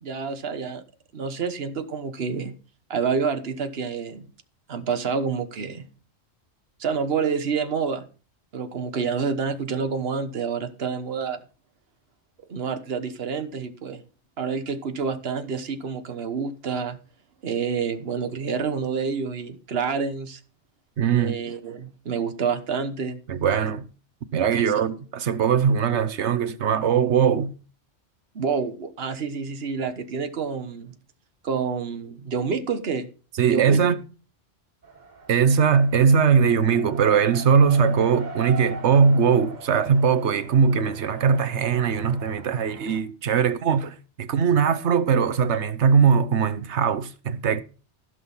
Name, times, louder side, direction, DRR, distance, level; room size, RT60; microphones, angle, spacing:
voice 1, 0.0-0.8 1.1-2.5 2.9-4.3 4.7-5.9 6.8-8.0 8.5-11.4 12.5-14.0 14.4-17.0 17.4-20.4 21.1-23.2 24.5-24.9 28.3-30.9 31.4-33.1 33.5-33.8, right 5 dB, 60° right, 1.4 m, -28 dB
voice 2, 21.0-21.4 23.3-23.9 24.3-27.5 33.4-34.0 35.3-47.6, right 6 dB, 80° right, 1.2 m, -20 dB
Race car auto racing, 34.8-43.0, right 4 dB, 40° right, 1.5 m, -41 dB
15.5 x 6.3 x 5.6 m
omnidirectional pair, 1.1 m